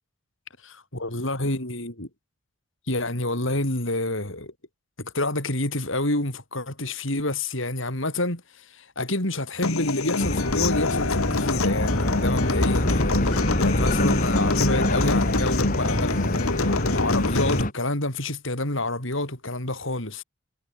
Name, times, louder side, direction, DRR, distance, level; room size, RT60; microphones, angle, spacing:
voice 1, 0.6-2.1 2.9-4.5 5.0-20.2, left 2 dB, 60° left, 6.1 m, -28 dB
Human voice / Acoustic guitar, 9.6-17.6, left 3 dB, 90° left, 1.5 m, -26 dB
sound 1, 10.2-17.7, left 1 dB, 40° left, 3.9 m, -25 dB
head